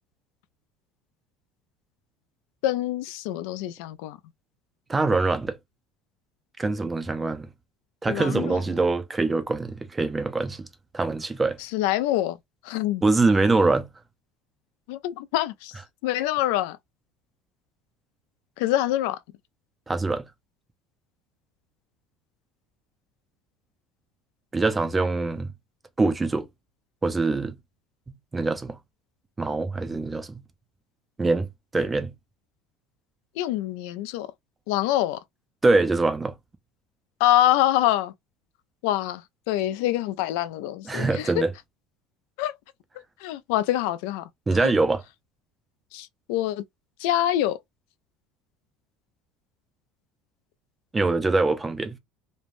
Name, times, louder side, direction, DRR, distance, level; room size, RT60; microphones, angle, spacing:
voice 1, 2.6-4.2 8.1-8.6 11.6-12.4 12.6-13.0 14.9-15.7 16.0-16.8 18.6-19.2 33.4-34.3 34.7-35.2 37.2-38.1 38.8-41.4 42.4-42.5 43.2-44.3 44.6-44.7 45.9-46.6 47.0-47.6, left 13 dB, 80° left, 0.3 m, -25 dB
voice 2, 4.9-5.6 6.6-7.5 8.0-10.7 10.9-11.6 13.0-13.9 19.9-20.2 24.5-25.5 26.0-26.5 27.0-27.6 28.3-28.8 29.4-30.4 31.2-32.1 35.6-36.3 40.9-41.5 44.5-45.0 50.9-52.0, right 3 dB, 15° right, 0.4 m, -24 dB
3.1 x 2.1 x 2.5 m
cardioid pair, 150°, 0 cm